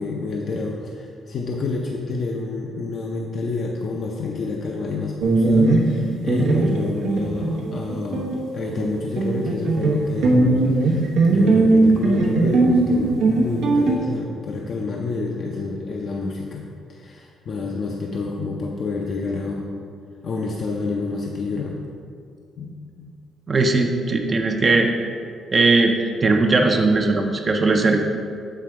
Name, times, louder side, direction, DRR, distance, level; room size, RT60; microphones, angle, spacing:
voice 1, 0.0-8.3 8.5-19.7 20.2-21.8 22.6-23.1, left 3 dB, 55° left, -1 dB, 0.6 m, -28 dB
sound 1, 5.2-8.4 8.7-14.0, right 2 dB, 80° right, 0.8 m, -19 dB
voice 2, 23.5-24.9 25.5-28.0, right 3 dB, 35° right, 3 dB, 0.5 m, -19 dB
7.6 x 3.3 x 4.8 m, 2.2 s
cardioid pair, 90°, 0 cm